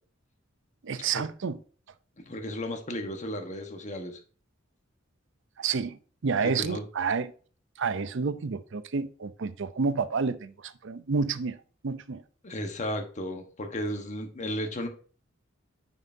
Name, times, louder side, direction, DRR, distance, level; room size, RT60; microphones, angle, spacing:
voice 1, 0.8-1.6 5.6-6.0 6.2-7.3 7.8-11.6 11.8-12.2, right 5 dB, 65° right, 0.6 m, -29 dB
voice 2, 2.2-4.2 6.4-6.8 12.4-14.9, left 1 dB, 35° left, 1.2 m, -34 dB
9.3 x 5.6 x 2.7 m
head